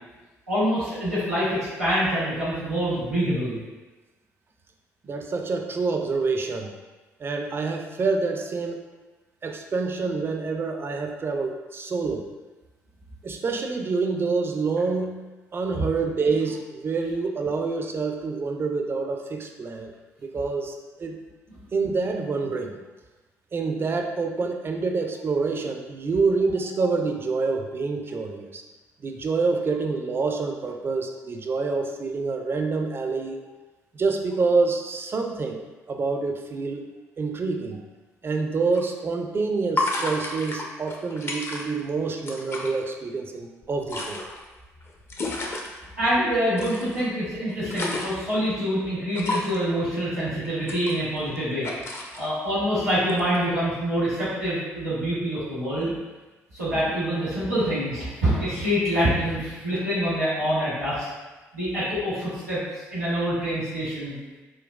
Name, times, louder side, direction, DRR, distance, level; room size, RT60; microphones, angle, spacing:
voice 1, 0.5-3.6 46.0-51.7 52.2-55.9 56.5-61.1 61.5-64.2, equal, 90° right, -14 dB, 1.2 m, -26 dB
voice 2, 5.0-6.7 7.2-8.8 9.4-12.3 13.2-15.3 15.5-19.9 20.2-21.1 21.7-22.8 23.5-28.6 29.0-33.4 33.9-35.6 35.9-36.9 37.2-37.8 38.2-44.2 52.1-52.4, right 4 dB, 30° right, 3 dB, 0.4 m, -27 dB
sound 1, 38.7-38.8 39.8-41.9 42.2-42.7 43.6-45.7 46.6-47.0 47.4-48.3 49.1-49.6 50.4-51.4 51.6-52.3 53.0-53.4, left 2 dB, 30° left, 0.5 m, -31 dB
3.7 x 2.2 x 2.3 m, 1.2 s
figure-of-eight pair, 45°, 8 cm